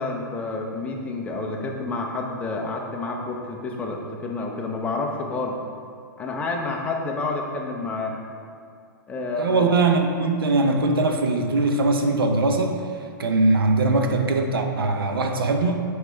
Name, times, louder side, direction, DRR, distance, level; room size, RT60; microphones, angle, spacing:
voice 1, 0.0-5.6 6.2-8.1 9.1-9.7, left 3 dB, 10° left, 0 dB, 0.7 m, -29 dB
voice 2, 9.4-12.8 13.2-15.8, right 3 dB, 90° right, 4 dB, 0.8 m, -21 dB
9.0 x 4.9 x 3.3 m, 2.2 s
hypercardioid pair, 150°, 12 cm